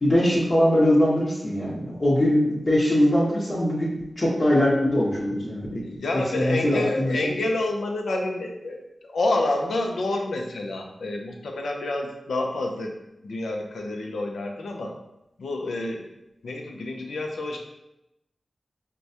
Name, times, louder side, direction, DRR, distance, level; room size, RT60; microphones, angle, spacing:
voice 1, 0.0-5.8 6.1-7.3, left 1 dB, 50° left, -8 dB, 0.9 m, -22 dB
voice 2, 5.8-8.8 9.1-12.9 13.2-14.9 15.4-16.0 16.4-17.6, left 2 dB, 90° left, 2 dB, 0.5 m, -28 dB
4.6 x 2.2 x 2.7 m, 0.88 s
cardioid pair, 40°, 0 cm